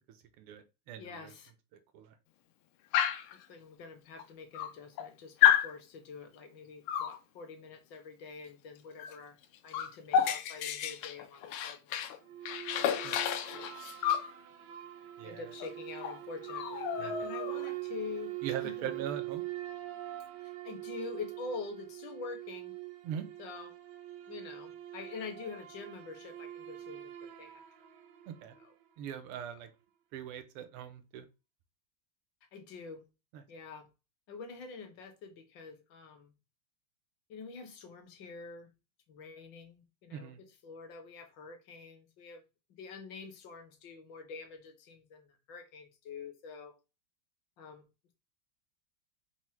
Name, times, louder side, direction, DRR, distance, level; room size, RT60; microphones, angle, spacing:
voice 1, 0.1-1.3 1.9-2.2 13.0-13.2 15.2-15.5 17.0-17.2 18.4-19.4 23.0-23.3 28.3-28.5 29.0-29.7 30.1-31.3 33.3-33.4 40.1-40.4, right 9 dB, 90° right, 1.6 m, -41 dB
voice 2, 1.0-1.5 3.5-9.4 9.6-12.1 12.9-13.7 15.2-18.3 18.6-18.9 20.4-22.8 23.4-23.7 24.3-27.6 28.6-28.7 32.5-33.0 33.5-33.9 34.3-36.3 37.3-38.7 39.1-40.3 40.6-42.4 42.7-46.7 47.6-47.8, left 4 dB, 65° left, 1.4 m, -46 dB
Dog, 2.9-3.3 4.2-4.3 4.5-5.1 5.4-5.7 6.9-7.2 9.0-9.2 9.4-12.2 12.5-14.3 15.6-15.7 16.0-16.2 16.5-17.7, left 10 dB, 80° left, 1.4 m, -30 dB
sound 1, 12.2-28.8, right 15 dB, 70° right, 1.0 m, -43 dB
4.7 x 2.1 x 4.2 m
omnidirectional pair, 2.4 m